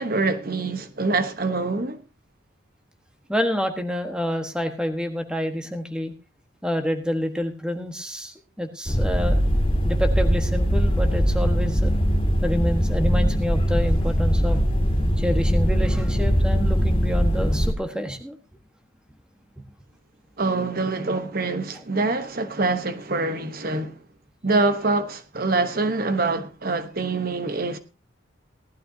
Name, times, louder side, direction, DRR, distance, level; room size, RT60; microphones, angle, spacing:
voice 1, 0.0-2.0 20.4-24.0 24.4-27.8, right 3 dB, 45° right, 1.0 m, -25 dB
voice 2, 3.3-6.1 6.6-9.4 9.8-11.9 12.4-14.6 15.2-18.4, equal, 5° right, 1.4 m, -28 dB
sound 1, 8.9-17.7, equal, 25° left, 2.9 m, -21 dB
18.0 x 12.0 x 2.8 m
head